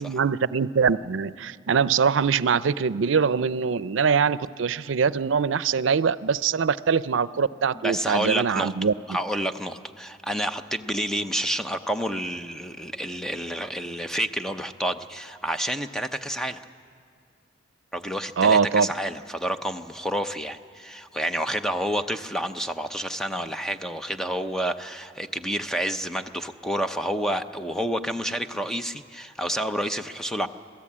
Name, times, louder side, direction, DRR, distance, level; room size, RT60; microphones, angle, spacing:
voice 1, 0.0-8.9 18.4-18.9, right 6 dB, 85° right, 17 dB, 0.5 m, -23 dB
voice 2, 7.7-8.7 9.1-16.6 17.9-30.5, equal, 5° left, 8 dB, 0.7 m, -29 dB
26.5 x 17.5 x 8.6 m, 2.2 s
head